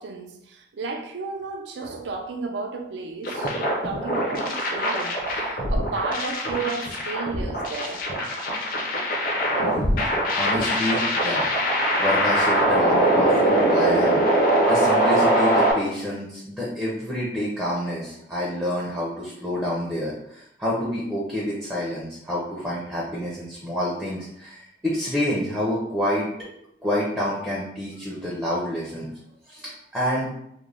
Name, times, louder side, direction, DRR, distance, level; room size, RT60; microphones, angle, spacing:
voice 1, 0.0-8.1, right 4 dB, 75° right, 0.4 m, -33 dB
sound 1, 3.2-15.7, right 1 dB, 50° left, 0.5 m, -22 dB
voice 2, 10.4-26.3 26.8-29.1 29.5-30.3, left 1 dB, 5° right, 0.4 m, -28 dB
2.4 x 2.1 x 3.2 m
head